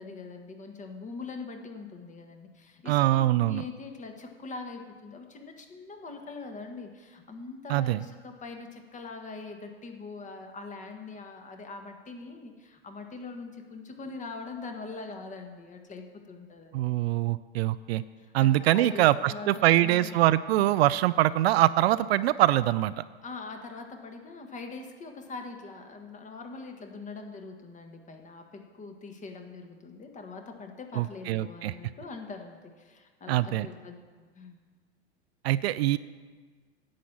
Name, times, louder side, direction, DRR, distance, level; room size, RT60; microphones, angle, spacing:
voice 1, 0.0-17.0 18.2-20.2 23.2-34.0 34.3-34.6, left 3 dB, 20° left, 5 dB, 1.4 m, -42 dB
voice 2, 2.9-3.6 7.7-8.0 16.7-18.0 18.3-23.0 31.0-31.7 33.3-33.7 35.4-36.0, right 15 dB, 65° right, 15 dB, 0.5 m, -24 dB
10.5 x 7.6 x 7.3 m, 1.5 s
hypercardioid pair, 115°, 34 cm